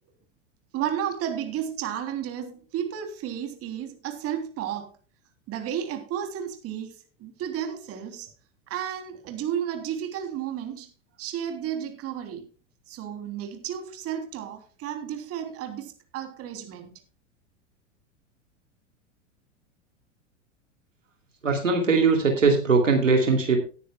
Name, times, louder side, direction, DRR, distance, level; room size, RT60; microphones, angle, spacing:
voice 1, 0.7-5.0 5.5-8.3 8.7-10.9 11.2-12.5 12.9-17.0, right 9 dB, 40° right, 3.3 m, -33 dB
voice 2, 21.4-23.6, right 4 dB, 90° right, 2.8 m, -20 dB
18.5 x 9.9 x 2.3 m
hypercardioid pair, 95°, 37 cm